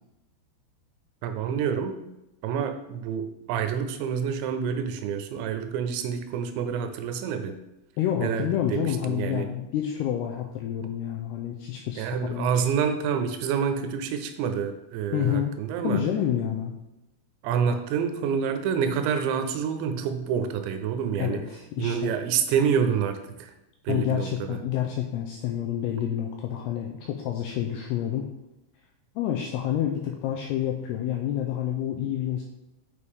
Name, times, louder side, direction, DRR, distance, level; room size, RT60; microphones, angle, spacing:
voice 1, 1.2-2.0 2.4-7.6 8.2-9.5 12.0-16.0 17.4-21.5 21.8-23.5 23.8-24.6, right 7 dB, 80° right, 8 dB, 2.9 m, -27 dB
voice 2, 8.0-12.5 15.1-15.5 15.8-16.7 17.7-17.8 21.2-22.1 23.9-28.3 29.2-32.4, left 10 dB, 90° left, 2 dB, 2.3 m, -28 dB
6.8 x 6.8 x 3.6 m, 0.92 s
omnidirectional pair, 5.3 m